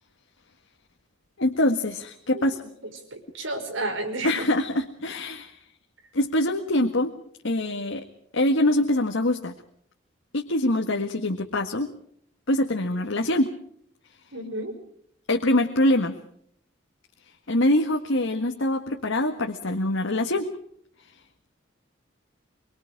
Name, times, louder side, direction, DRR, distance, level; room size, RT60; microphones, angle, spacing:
voice 1, 1.4-2.6 4.2-5.6 6.1-7.1 7.4-8.0 8.3-9.5 10.3-11.9 12.5-13.5 15.3-16.1 17.5-20.5, left 1 dB, 85° left, 3 dB, 1.7 m, -24 dB
voice 2, 3.1-4.5 14.3-14.8, right 2 dB, 85° right, 5 dB, 5.5 m, -31 dB
24.5 x 24.5 x 4.9 m, 0.65 s
head